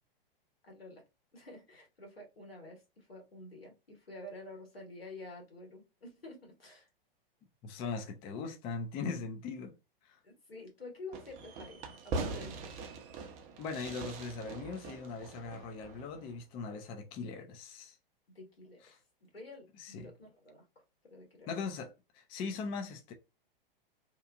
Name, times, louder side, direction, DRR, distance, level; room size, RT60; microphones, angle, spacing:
voice 1, 0.6-1.0 1.3-6.9 10.2-12.8 18.3-20.6 21.1-21.5, left 2 dB, 90° left, 1.4 m, -49 dB
voice 2, 7.6-9.8 10.0-10.2 13.6-18.0 19.8-20.1 21.5-23.1, left 4 dB, 20° left, 0.4 m, -40 dB
Fireworks, 11.1-16.4, right 3 dB, 25° right, 0.6 m, -42 dB
2.9 x 2.3 x 2.4 m
figure-of-eight pair, 110°, 29 cm